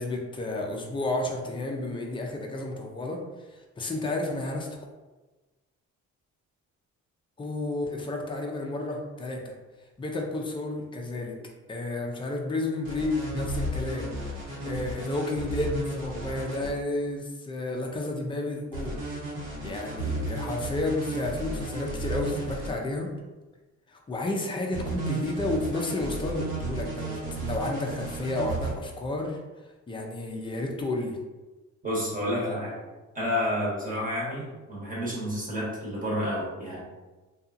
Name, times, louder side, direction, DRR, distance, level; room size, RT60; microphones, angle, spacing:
voice 1, 0.0-3.2 3.5-4.7 7.4-9.5 10.0-11.4 11.7-19.0 19.6-23.1 23.9-29.4 29.9-31.2, left 2 dB, 15° left, 1 dB, 0.4 m, -31 dB
sound 1, 12.8-16.7 18.7-22.7 24.7-28.7, right 2 dB, 85° right, 1.0 m, -33 dB
voice 2, 31.8-32.8 33.1-36.8, equal, 25° right, -6 dB, 1.0 m, -30 dB
2.7 x 2.3 x 2.5 m, 1.2 s
cardioid pair, 90°, 30 cm